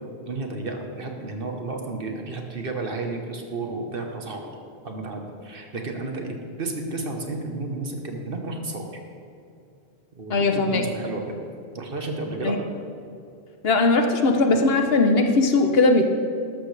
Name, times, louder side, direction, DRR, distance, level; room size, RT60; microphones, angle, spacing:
voice 1, 0.0-4.4 4.8-8.9 10.1-11.4 11.7-12.6, right 2 dB, 55° right, 3 dB, 1.4 m, -32 dB
voice 2, 10.3-10.8 12.4-12.6 13.6-16.1, left 3 dB, 65° left, 5 dB, 1.1 m, -19 dB
13.0 x 12.5 x 3.4 m, 2.5 s
omnidirectional pair, 1.1 m